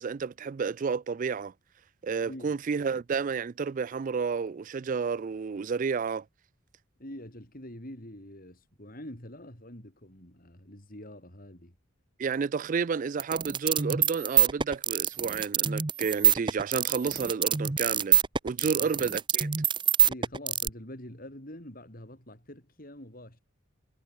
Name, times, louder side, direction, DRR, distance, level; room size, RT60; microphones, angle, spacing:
voice 1, 0.0-1.5 2.0-6.2 12.2-19.5, right 5 dB, 40° right, 0.3 m, -31 dB
voice 2, 2.2-2.6 7.0-11.7 18.6-19.1 20.0-23.4, left 1 dB, 45° left, 5.8 m, -45 dB
sound 1, 13.2-20.7, right 9 dB, 25° right, 0.8 m, -25 dB
head